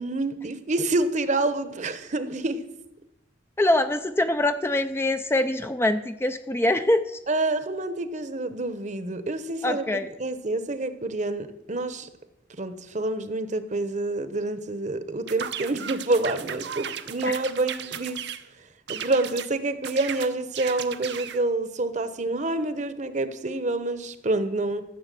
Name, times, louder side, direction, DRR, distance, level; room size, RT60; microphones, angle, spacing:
voice 1, 0.0-2.6 7.3-12.1 12.6-18.2 18.9-24.8, right 2 dB, 40° right, 12 dB, 1.0 m, -27 dB
voice 2, 3.6-7.2 9.6-10.1 17.2-17.4, left 1 dB, 15° left, 9 dB, 0.5 m, -24 dB
sound 1, 15.3-18.4 18.9-19.5 19.8-21.4, right 8 dB, 60° right, 0.8 m, -35 dB
14.0 x 6.9 x 8.3 m, 0.89 s
head